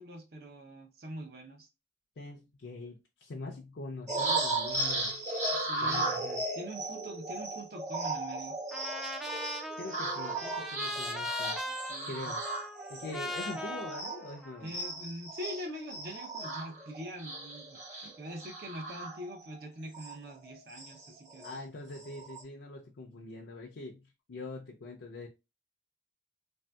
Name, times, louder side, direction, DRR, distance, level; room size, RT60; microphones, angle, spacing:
voice 1, 0.0-1.7 5.5-6.1 6.6-8.6 11.9-12.4 13.1-13.2 14.6-21.6, equal, 60° right, 0.6 m, -43 dB
voice 2, 2.2-5.2 5.8-6.4 9.8-11.6 12.1-12.4 12.9-14.7 21.4-25.3, left 2 dB, 85° left, 0.5 m, -43 dB
sound 1, 4.1-14.4 14.7-19.6 19.9-20.1 20.4-21.6 22.0-22.4, right 2 dB, 40° right, 1.0 m, -36 dB
Trumpet, 8.7-14.9, left 1 dB, ahead, 0.3 m, -39 dB
3.3 x 2.6 x 2.2 m
head